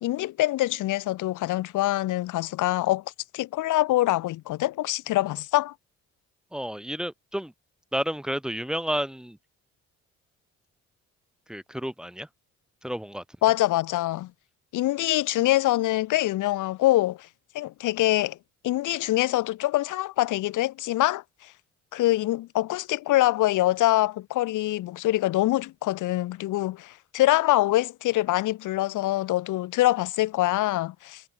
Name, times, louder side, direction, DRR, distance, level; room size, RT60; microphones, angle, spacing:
voice 1, 0.0-3.0 3.3-5.7 13.4-14.3 14.7-17.3 17.5-18.4 18.6-21.2 21.9-31.2, left 16 dB, 80° left, 1.1 m, -24 dB
voice 2, 6.5-7.5 7.9-9.4 11.5-12.3 12.8-13.2, equal, ahead, 0.7 m, -31 dB
cardioid pair, 90°, 30 cm